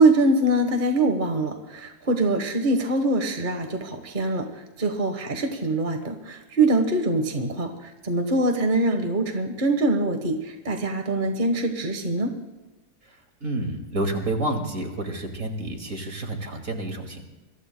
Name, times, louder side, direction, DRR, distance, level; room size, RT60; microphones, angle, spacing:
voice 1, 0.0-12.3, right 2 dB, 35° right, 5 dB, 1.2 m, -23 dB
voice 2, 13.4-17.2, right 1 dB, 50° right, 3 dB, 2.6 m, -29 dB
27.0 x 23.0 x 2.2 m, 1.1 s
omnidirectional pair, 1.7 m